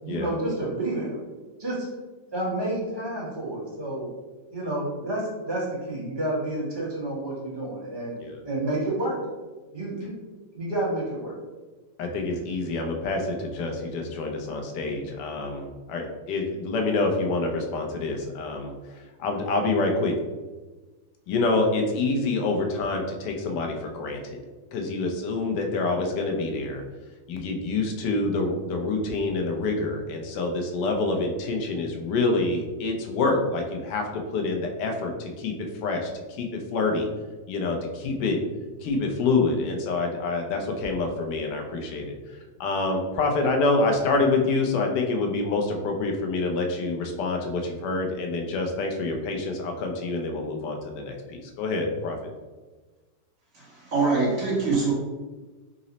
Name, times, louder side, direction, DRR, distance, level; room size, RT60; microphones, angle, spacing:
voice 1, 0.0-1.2 1.6-1.8 2.3-4.1 4.5-8.2 8.4-9.2 9.7-10.1 10.5-11.4, right 1 dB, 20° right, -7 dB, 0.9 m, -29 dB
voice 2, 12.0-18.7 19.2-20.2 21.3-24.4 24.7-26.8 27.3-35.5 35.8-37.1 37.5-38.4 38.8-52.2, left 3 dB, 75° left, 2 dB, 1.2 m, -27 dB
voice 3, 53.5-54.9, right 4 dB, 55° right, -5 dB, 1.2 m, -24 dB
3.9 x 2.0 x 3.9 m, 1.3 s
omnidirectional pair, 1.9 m